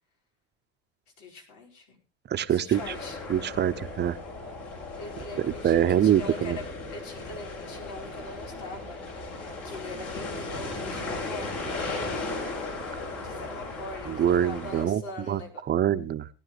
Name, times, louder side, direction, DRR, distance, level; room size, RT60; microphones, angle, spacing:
voice 1, 1.2-2.0 2.5-3.2 5.0-11.7 13.2-15.6, left 2 dB, 75° left, 2 dB, 5.1 m, -42 dB
voice 2, 2.3-2.8 3.3-4.2 5.4-6.6 14.1-15.0 15.3-15.4 15.7-16.3, right 10 dB, 35° right, 12 dB, 0.8 m, -24 dB
sound 1, 2.7-14.9, left 3 dB, 55° left, 6.1 m, -36 dB
19.0 x 10.5 x 3.2 m, 0.33 s
supercardioid pair, 110°, 29 cm